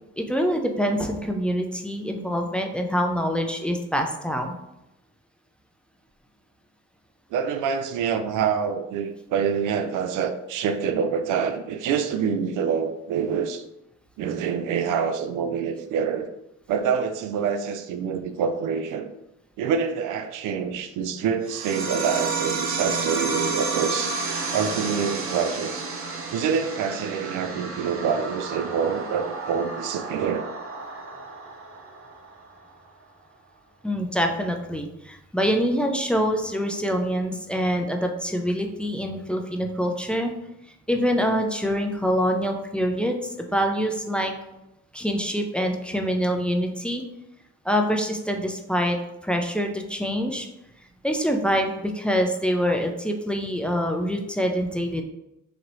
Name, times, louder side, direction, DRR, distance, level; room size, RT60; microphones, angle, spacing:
voice 1, 0.2-4.5 33.8-40.3 40.9-43.2 43.5-44.3 44.9-47.0 47.7-49.0 49.2-50.5 51.0-55.0, equal, 5° left, 3 dB, 0.5 m, -25 dB
voice 2, 7.3-13.6 14.2-16.3 16.7-19.1 19.6-24.2 24.5-25.8 26.3-30.4, right 6 dB, 90° right, 9 dB, 0.5 m, -26 dB
sound 1, 21.4-32.5, right 4 dB, 45° right, 0.7 m, -31 dB
4.0 x 2.8 x 3.1 m, 0.88 s
cardioid pair, 90°, 30 cm